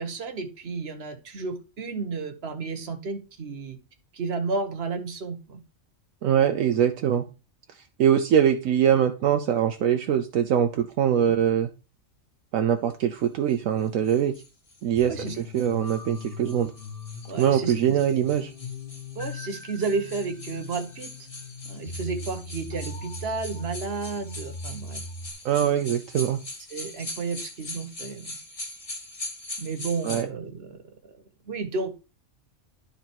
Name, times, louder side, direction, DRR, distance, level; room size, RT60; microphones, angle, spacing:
voice 1, 0.0-3.8 4.1-5.6 11.2-11.3 15.1-15.3 17.3-17.7 19.1-21.1 21.6-25.0 26.7-28.3 29.6-30.8 31.1-31.9, right 4 dB, 50° right, 6 dB, 1.4 m, -32 dB
voice 2, 6.2-7.2 7.7-11.7 12.5-14.3 14.8-15.2 15.5-16.7 17.4-18.5 25.4-26.4 30.0-30.3, right 9 dB, 75° right, 7 dB, 1.1 m, -23 dB
sound 1, 13.5-30.2, left 2 dB, 25° left, 1.3 m, -42 dB
sound 2, 15.0-25.3, left 2 dB, 45° left, 1.5 m, -40 dB
11.5 x 3.9 x 4.5 m, 0.32 s
omnidirectional pair, 1.4 m